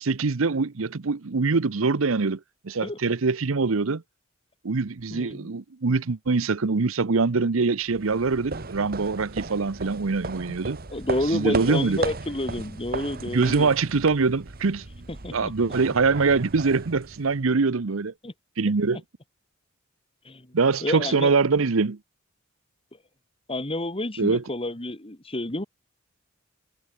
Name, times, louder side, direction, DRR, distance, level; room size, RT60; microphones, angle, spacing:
voice 1, 0.0-2.4 2.6-4.0 4.6-10.8 11.3-12.0 13.3-14.9 15.3-18.1 18.6-19.0 20.5-22.0 24.2-24.4, right 4 dB, 70° right, 0.8 m, -23 dB
voice 2, 5.1-5.5 10.5-10.6 10.9-13.7 15.2-15.7 18.2-18.3 18.9-19.0 20.2-21.3 23.5-25.6, left 1 dB, 25° left, 2.3 m, -30 dB
sound 1, 7.9-17.5, right 3 dB, 45° right, 1.5 m, -36 dB
head